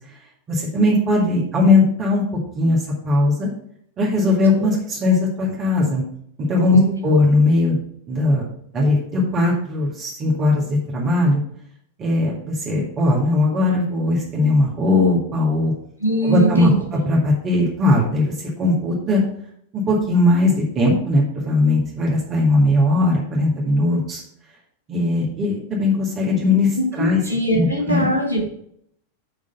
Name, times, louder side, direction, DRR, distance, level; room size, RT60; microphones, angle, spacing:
voice 1, 0.5-2.8 3.0-3.5 4.0-6.0 6.4-7.8 8.1-8.5 8.7-11.4 12.0-15.7 16.2-19.2 19.7-24.2 24.9-27.2 27.5-28.1, left 2 dB, 30° right, -3 dB, 1.9 m, -19 dB
voice 2, 16.0-16.8 26.8-28.5, right 2 dB, 80° left, 0 dB, 2.2 m, -21 dB
8.2 x 3.7 x 5.6 m, 0.67 s
figure-of-eight pair, 90°, 0 cm